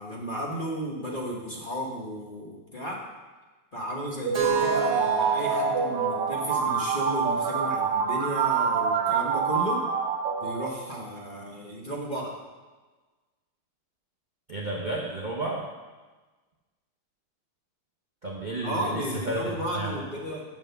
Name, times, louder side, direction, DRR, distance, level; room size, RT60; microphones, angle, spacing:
voice 1, 0.0-3.0 3.7-9.8 10.4-12.3 18.6-20.4, right 1 dB, 30° left, -2 dB, 0.9 m, -34 dB
Keyboard (musical), 4.3-8.2, right 10 dB, 35° right, 1.0 m, -34 dB
sound 1, 4.3-11.1, right 5 dB, 90° right, 1.7 m, -26 dB
voice 2, 14.5-15.7 18.2-19.4 19.7-20.0, right 2 dB, 70° right, -3 dB, 0.4 m, -32 dB
7.6 x 5.7 x 6.8 m, 1.3 s
omnidirectional pair, 2.4 m